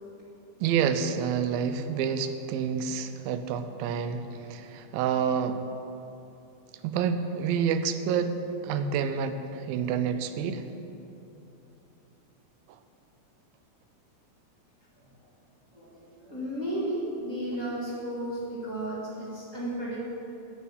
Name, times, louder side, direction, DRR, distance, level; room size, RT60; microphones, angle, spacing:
voice 1, 0.6-5.6 6.8-8.4 8.6-10.6 12.7-12.8, right 7 dB, 80° right, 9 dB, 2.3 m, -28 dB
voice 2, 15.7-20.1, right 1 dB, 55° right, -7 dB, 0.8 m, -34 dB
10.5 x 8.8 x 7.1 m, 2.9 s
omnidirectional pair, 4.4 m